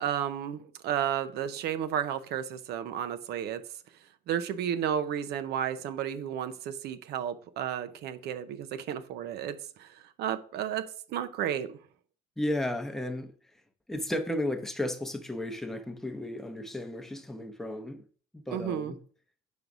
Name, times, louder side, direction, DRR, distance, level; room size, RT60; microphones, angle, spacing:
voice 1, 0.0-3.6 4.3-11.8 18.5-18.9, right 9 dB, 75° right, 0.7 m, -32 dB
voice 2, 12.4-13.3 13.9-18.0 18.3-19.0, left 1 dB, ahead, 0.8 m, -34 dB
5.2 x 4.0 x 6.0 m
cardioid pair, 110°, 17 cm